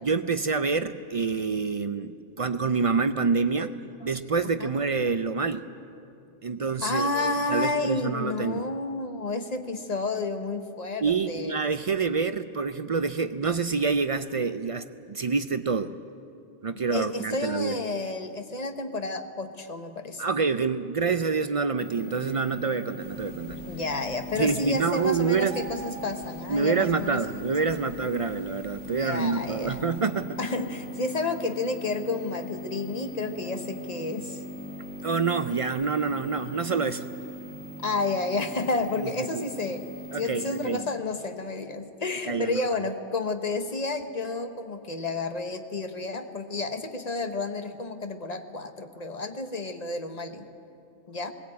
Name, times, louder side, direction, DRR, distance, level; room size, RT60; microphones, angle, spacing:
voice 1, 0.0-3.8 4.0-5.7 6.4-8.6 11.0-15.9 16.6-17.8 20.2-23.6 24.4-25.6 26.5-30.4 35.0-37.0 39.0-39.1 39.3-39.4 40.1-40.8 42.3-42.6, right 5 dB, 50° right, 11 dB, 0.4 m, -27 dB
voice 2, 6.8-11.6 16.7-20.2 23.7-27.2 28.0-28.1 28.8-29.8 30.4-34.4 37.8-50.5 51.1-51.3, left 3 dB, 35° left, 7 dB, 1.1 m, -31 dB
sound 1, 21.8-40.8, equal, 10° left, 1.7 m, -40 dB
sound 2, 23.0-30.0, right 5 dB, 90° right, 1.5 m, -48 dB
20.0 x 16.5 x 8.6 m, 2.7 s
omnidirectional pair, 1.2 m